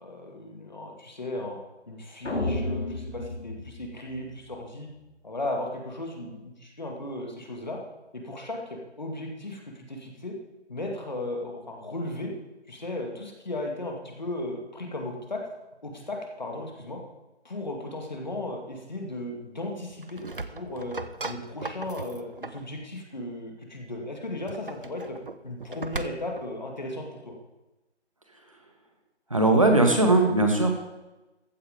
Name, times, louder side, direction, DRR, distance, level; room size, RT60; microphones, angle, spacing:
voice 1, 0.0-1.6 1.9-4.9 5.2-7.8 8.1-10.4 10.7-12.3 12.7-15.5 15.8-17.0 17.4-20.2 20.5-21.0 21.3-25.2 25.4-27.3, left 1 dB, 40° left, 1 dB, 2.3 m, -36 dB
sound 1, 2.2-4.5, left 2 dB, 80° left, 3.6 m, -32 dB
sound 2, 19.9-22.7 24.3-26.5, right 3 dB, 50° right, 0.7 m, -38 dB
voice 2, 29.3-30.7, right 2 dB, 30° right, 3 dB, 1.5 m, -19 dB
14.5 x 8.6 x 5.2 m, 1.0 s
figure-of-eight pair, 180°, 35 cm